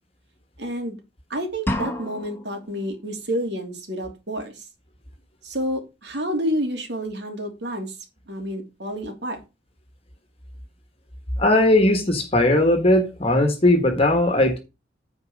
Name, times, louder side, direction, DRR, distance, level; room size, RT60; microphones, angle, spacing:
voice 1, 0.6-1.0 1.3-4.7 5.4-8.0 8.3-9.4, equal, 65° right, 2.9 m, -29 dB
sound 1, 1.7-2.6, left 1 dB, 10° left, 1.5 m, -28 dB
voice 2, 11.4-14.6, left 1 dB, 30° left, 1.6 m, -18 dB
9.6 x 4.6 x 6.5 m
head